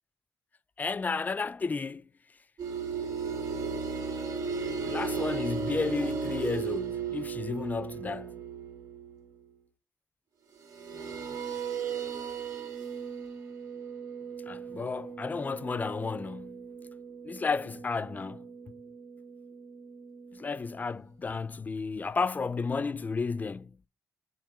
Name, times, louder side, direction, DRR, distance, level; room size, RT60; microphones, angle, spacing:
voice 1, 0.8-2.1 4.8-8.4 14.5-16.6 17.2-18.5 20.3-23.8, left 4 dB, 25° left, 0.3 m, -32 dB
sound 1, 2.6-9.2 10.6-20.9, right 5 dB, 65° right, 3.0 m, -36 dB
7.0 x 2.9 x 4.7 m
cardioid pair, 130°, 7 cm